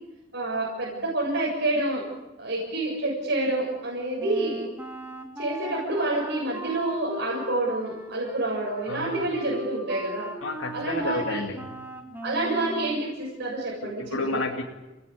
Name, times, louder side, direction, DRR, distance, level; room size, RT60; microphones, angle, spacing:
voice 1, 0.3-2.0 2.4-4.6 5.4-10.3 10.7-11.4 12.2-14.4, right 2 dB, 65° right, -3 dB, 7.5 m, -28 dB
Wind instrument woodwind instrument, 4.2-13.0, equal, 10° right, 2.6 m, -38 dB
voice 2, 8.9-9.3 10.4-11.8 13.8-14.6, left 2 dB, 80° left, -1 dB, 2.5 m, -31 dB
30.0 x 19.0 x 8.6 m, 1.1 s
head